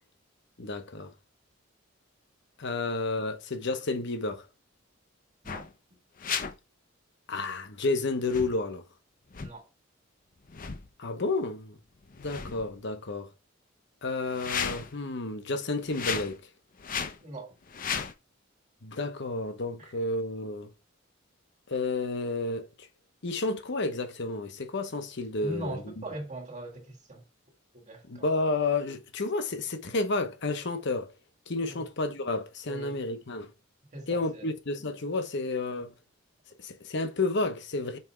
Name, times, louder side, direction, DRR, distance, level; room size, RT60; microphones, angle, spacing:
voice 1, 0.6-1.1 2.6-4.5 7.3-8.8 11.0-11.8 12.2-13.3 14.0-16.4 18.8-20.7 21.7-22.9 23.2-25.9 28.1-31.1 31.5-33.5 34.1-35.9 36.6-38.0, left 3 dB, 65° left, 1.0 m, -31 dB
sound 1, 5.5-5.7 6.2-6.5 8.2-8.6 9.3-9.5 10.5-10.9 12.0-12.8 14.2-15.0 15.8-16.4 16.8-17.2 17.7-18.1, left 7 dB, 45° left, 0.7 m, -34 dB
voice 2, 17.2-17.6 19.8-19.9 25.4-27.2 27.7-28.3 31.7-31.9 32.6-33.0 33.9-34.5, right 2 dB, 35° right, 1.7 m, -40 dB
5.7 x 4.2 x 4.5 m
head